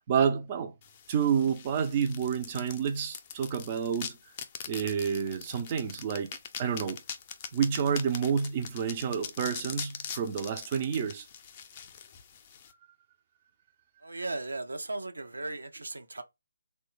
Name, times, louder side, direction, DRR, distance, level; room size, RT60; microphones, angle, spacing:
voice 1, 0.1-0.7 1.1-4.2 4.7-6.3 6.6-7.0 7.5-11.3, right 7 dB, 30° right, 0.4 m, -29 dB
sound 1, 0.8-12.7, left 7 dB, 30° left, 0.4 m, -43 dB
voice 2, 14.0-16.2, right 2 dB, 80° right, 0.6 m, -36 dB
3.1 x 2.2 x 2.9 m
figure-of-eight pair, 150°, 0 cm